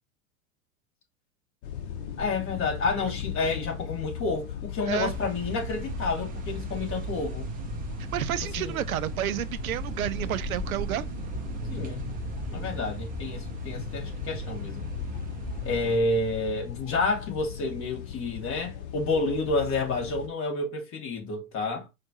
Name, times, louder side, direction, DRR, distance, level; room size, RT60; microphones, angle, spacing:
sound 1, 1.6-20.3, left 9 dB, 50° left, 1.1 m, -38 dB
voice 1, 2.2-7.5 8.6-8.8 11.7-12.0 12.5-14.8 15.6-21.9, left 3 dB, 30° left, 1.7 m, -29 dB
sound 2, 5.1-16.0, right 5 dB, 20° right, 0.5 m, -37 dB
voice 2, 8.1-11.1, right 11 dB, 80° right, 0.6 m, -30 dB
4.6 x 2.5 x 2.9 m
hypercardioid pair, 95°, 42 cm